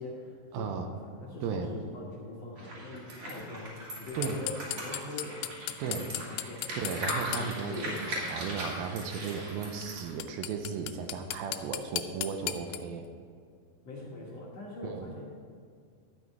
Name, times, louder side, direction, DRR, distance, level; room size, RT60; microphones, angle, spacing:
voice 1, 0.0-3.7 4.0-5.4 5.8-6.7 7.3-8.0 13.8-15.2, left 2 dB, 55° left, -4 dB, 1.9 m, -42 dB
voice 2, 0.5-0.9 1.4-1.7 4.2-4.4 5.8-6.0 6.8-7.9 8.3-13.1 14.8-15.1, right 6 dB, 80° right, 6 dB, 2.4 m, -35 dB
sound 1, 2.6-10.1, right 1 dB, 45° right, 3.1 m, -39 dB
sound 2, 4.2-7.4 9.8-9.9 10.2-12.8, left 13 dB, 85° left, 2.4 m, -35 dB
12.0 x 8.7 x 4.6 m, 2.2 s
omnidirectional pair, 4.4 m